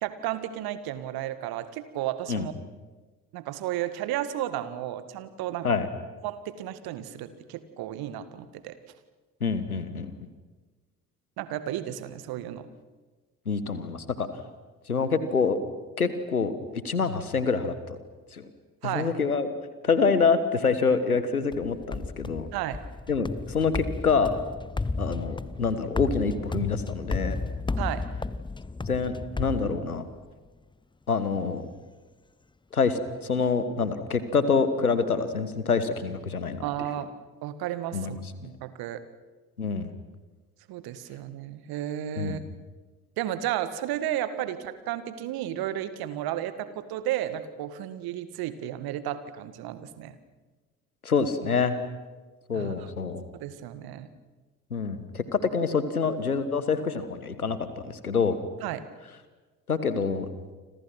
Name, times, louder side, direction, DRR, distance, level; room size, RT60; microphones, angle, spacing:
voice 1, 0.0-2.5 3.3-5.7 6.2-8.8 11.4-12.7 18.8-19.1 22.5-22.8 27.8-28.0 36.6-37.1 37.4-39.0 40.7-42.4 43.2-50.2 52.5-52.9 53.3-54.1 58.6-58.8, right 12 dB, 55° right, 13 dB, 2.0 m, -33 dB
voice 2, 9.4-10.3 13.4-14.3 14.9-15.6 16.0-18.0 18.3-18.5 18.8-19.5 19.8-22.5 23.1-24.4 25.0-27.4 28.8-30.0 31.1-31.7 32.7-36.6 37.9-38.5 39.6-39.9 42.2-42.4 51.0-51.8 52.5-53.2 54.7-58.4 59.7-60.3, left 5 dB, 85° left, 12 dB, 1.4 m, -26 dB
sound 1, 21.5-30.3, left 3 dB, 10° left, 0.8 m, -33 dB
29.5 x 26.0 x 6.1 m, 1.3 s
figure-of-eight pair, 50°, 43 cm